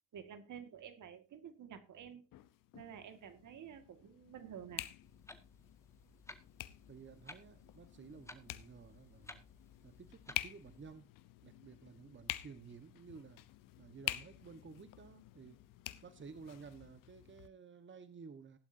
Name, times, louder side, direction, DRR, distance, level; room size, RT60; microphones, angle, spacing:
voice 1, 0.1-2.3 2.7-4.9, right 8 dB, 60° right, 10 dB, 2.0 m, -51 dB
sound 1, 2.3-17.5, left 15 dB, 70° left, 0.9 m, -48 dB
Clock, 5.0-10.9, left 1 dB, 10° left, 1.9 m, -57 dB
voice 2, 6.9-9.4 9.8-11.1 11.4-13.4 13.8-15.6 16.0-18.6, right 5 dB, 35° right, 11 dB, 1.4 m, -54 dB
16.0 x 11.5 x 2.7 m, 0.28 s
hypercardioid pair, 55°, 34 cm